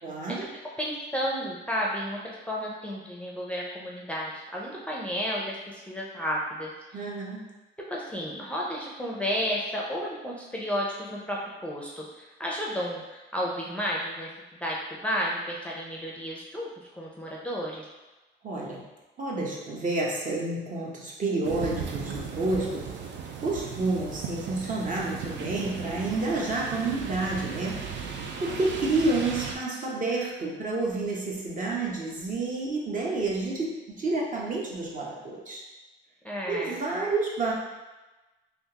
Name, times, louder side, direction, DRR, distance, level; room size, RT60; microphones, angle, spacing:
voice 1, 0.0-0.5 6.9-7.4 18.4-18.8 19.2-22.9 23.4-27.9 28.4-35.6 36.5-37.5, right 2 dB, 40° right, -3 dB, 0.9 m, -29 dB
voice 2, 0.8-7.1 7.9-14.3 14.6-16.7 17.0-17.8 36.2-36.7, equal, 5° left, -4 dB, 0.5 m, -32 dB
sound 1, 21.4-29.5, right 6 dB, 65° right, 0.5 m, -36 dB
3.5 x 2.5 x 2.8 m, 1.1 s
cardioid pair, 90°, 20 cm